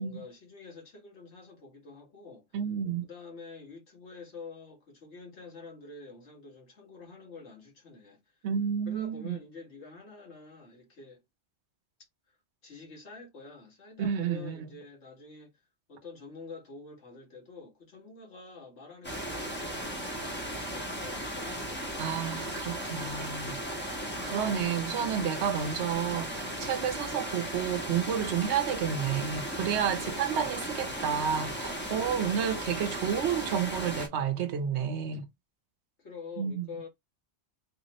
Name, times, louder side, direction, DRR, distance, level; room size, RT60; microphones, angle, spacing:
voice 1, 0.0-2.5 3.0-8.2 8.8-11.2 12.6-15.6 15.9-22.1 24.2-24.4 30.0-30.6 30.9-31.1 32.0-32.6 36.0-36.9, left 4 dB, 85° left, 1.8 m, -47 dB
voice 2, 2.5-3.1 8.4-9.4 14.0-14.7 22.0-23.6 23.9-35.3 36.4-36.7, right 8 dB, 85° right, 1.0 m, -31 dB
sound 1, 19.0-34.1, equal, 10° left, 0.9 m, -36 dB
3.5 x 2.8 x 3.0 m
omnidirectional pair, 1.1 m